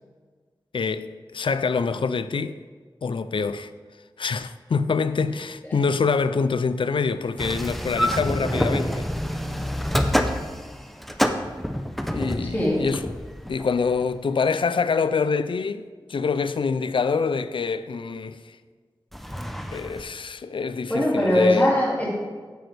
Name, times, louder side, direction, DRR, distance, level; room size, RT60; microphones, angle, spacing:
voice 1, 0.7-2.6 3.0-3.7 4.2-9.1 12.1-13.2 13.5-15.8 16.1-18.6 19.7-21.7, left 5 dB, 85° left, 0.4 m, -25 dB
sound 1, 7.4-14.1 19.1-20.0, equal, ahead, 0.6 m, -27 dB
voice 2, 12.4-12.8 20.9-22.1, left 1 dB, 20° left, 2.3 m, -20 dB
9.3 x 7.9 x 3.3 m
wide cardioid pair, 75°, 8 cm